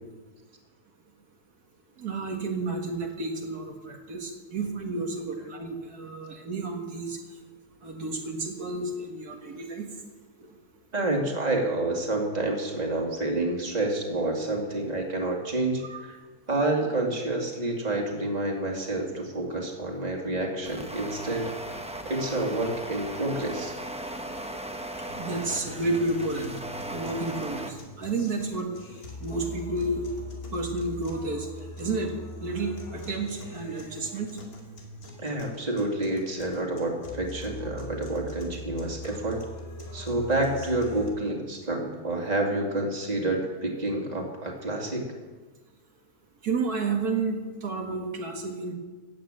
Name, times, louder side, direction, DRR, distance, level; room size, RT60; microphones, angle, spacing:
voice 1, 2.0-7.2 7.8-9.9 10.4-10.5 15.8-16.0 25.2-26.6 26.9-28.7 29.2-30.0 30.5-31.5 31.8-32.1 32.4-34.3 46.4-48.7, right 3 dB, 80° right, 2 dB, 2.2 m, -31 dB
voice 2, 10.9-16.2 16.5-21.5 22.0-23.7 35.2-39.4 39.9-45.0, right 2 dB, 25° right, 1 dB, 2.3 m, -28 dB
sound 1, 20.6-27.7, right 1 dB, 5° right, 0.7 m, -37 dB
sound 2, 25.1-41.1, left 1 dB, 70° left, 2.8 m, -42 dB
15.0 x 8.6 x 8.8 m, 1.3 s
omnidirectional pair, 1.6 m